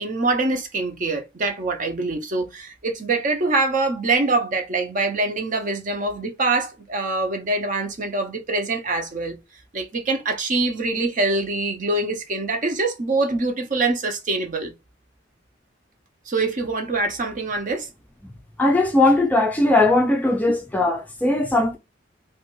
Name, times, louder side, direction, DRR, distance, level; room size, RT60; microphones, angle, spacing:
voice 1, 0.0-9.3 9.7-14.7 16.3-17.9, right 3 dB, 40° right, 0.5 m, -24 dB
voice 2, 18.6-21.8, left 2 dB, 10° left, 0.3 m, -19 dB
2.4 x 2.1 x 3.0 m
head